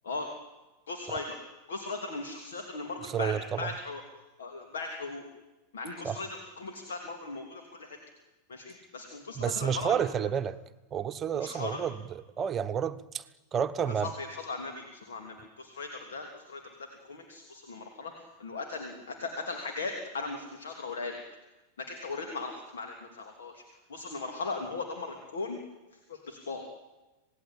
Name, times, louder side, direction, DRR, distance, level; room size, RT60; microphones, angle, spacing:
voice 1, 0.9-1.4 1.7-4.0 4.4-5.2 5.7-8.0 8.5-10.2 11.4-11.8 13.8-21.2 21.8-23.6 23.9-25.6 25.9-26.7, left 3 dB, 65° left, 4 dB, 3.1 m, -38 dB
voice 2, 3.0-3.7 6.0-6.2 9.3-10.6 10.9-13.2 13.5-14.1, right 8 dB, 25° right, 10 dB, 1.1 m, -30 dB
27.0 x 18.5 x 8.9 m, 1.1 s
figure-of-eight pair, 90°, 0 cm